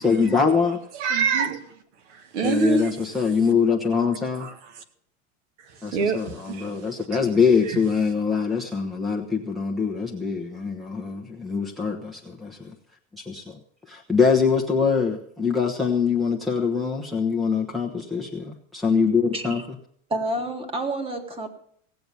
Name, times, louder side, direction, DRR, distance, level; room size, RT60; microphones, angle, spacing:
voice 1, 0.0-0.8 2.4-4.5 5.8-12.6 13.2-13.6 13.9-19.6, left 5 dB, ahead, 1.0 m, -23 dB
voice 2, 0.9-1.6 2.1-2.9 4.4-4.8 5.9-6.7 7.7-7.8, right 5 dB, 85° right, 2.0 m, -25 dB
voice 3, 19.3-19.7 20.1-21.5, right 1 dB, 15° right, 1.8 m, -29 dB
18.0 x 7.9 x 6.9 m
supercardioid pair, 155°, 34 cm